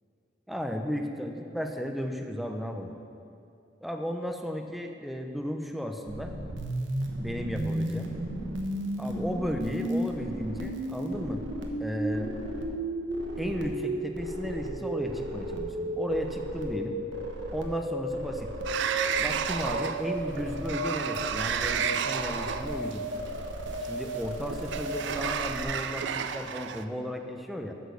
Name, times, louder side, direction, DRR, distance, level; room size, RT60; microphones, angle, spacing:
voice 1, 0.5-2.9 3.8-6.3 7.2-8.1 9.0-11.4 11.8-12.3 13.4-17.0 17.5-18.5 19.2-23.1 23.9-27.7, equal, ahead, 4 dB, 0.6 m, -34 dB
sound 1, 6.1-25.6, right 1 dB, 85° right, 1.1 m, -34 dB
Sliding door, 18.7-26.8, right 7 dB, 65° right, 0.4 m, -32 dB
9.7 x 6.2 x 6.8 m, 2.6 s
head